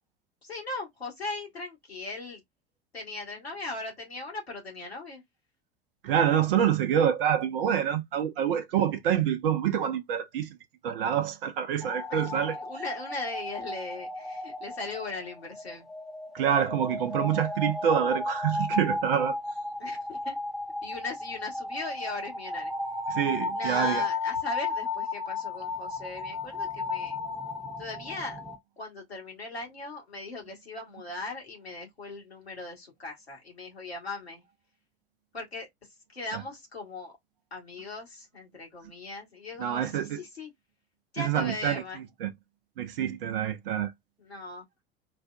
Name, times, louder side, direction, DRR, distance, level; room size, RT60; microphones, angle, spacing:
voice 1, 0.4-2.4 2.9-5.2 8.3-8.5 12.1-12.3 12.6-15.9 19.8-20.4 20.8-22.7 23.5-27.2 27.8-28.4 28.8-34.4 35.3-35.7 36.1-37.1 37.5-40.5 41.1-42.0 44.2-44.6, left 3 dB, 85° left, 1.4 m, -38 dB
voice 2, 6.0-10.6 10.8-12.6 16.3-19.4 23.1-24.0 36.3-36.4 39.6-40.2 41.2-42.3 42.8-43.9, right 9 dB, 65° right, 0.7 m, -27 dB
sound 1, 11.8-28.6, left 2 dB, ahead, 0.6 m, -34 dB
4.1 x 2.2 x 2.3 m
figure-of-eight pair, 75°, 31 cm